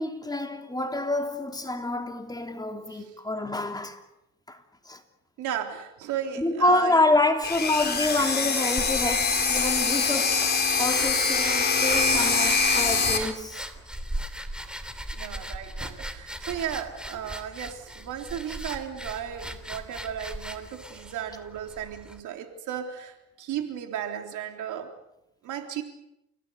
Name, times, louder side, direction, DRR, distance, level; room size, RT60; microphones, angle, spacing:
voice 1, 0.0-4.0 4.5-4.6 4.9-5.0 6.4-13.6, left 2 dB, 15° left, 3.1 m, -27 dB
voice 2, 5.4-7.0 15.1-24.9 25.4-25.8, right 9 dB, 85° right, 3.6 m, -35 dB
sound 1, 7.4-13.2, left 4 dB, 35° left, 4.4 m, -24 dB
sound 2, 8.8-22.2, right 1 dB, 5° right, 3.2 m, -39 dB
29.5 x 17.0 x 8.2 m
cardioid pair, 90°, 30 cm